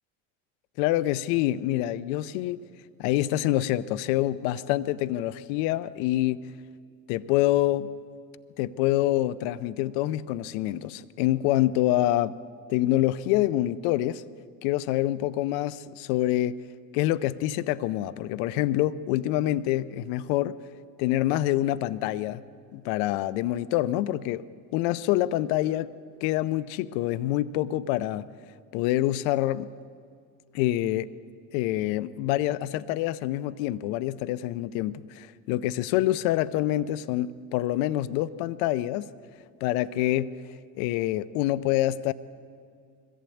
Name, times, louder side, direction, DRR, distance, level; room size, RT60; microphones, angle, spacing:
voice 1, 0.8-2.6 3.0-6.5 7.1-7.9 8.6-12.4 12.7-14.2 14.6-16.6 16.9-20.6 21.0-22.4 22.7-24.4 24.7-25.9 26.2-28.3 28.7-29.7 30.5-31.1 31.5-39.1 39.6-40.4 40.7-42.1, left 14 dB, 70° left, 17 dB, 0.7 m, -26 dB
22.0 x 15.0 x 8.6 m, 2.2 s
hypercardioid pair, 80°, 44 cm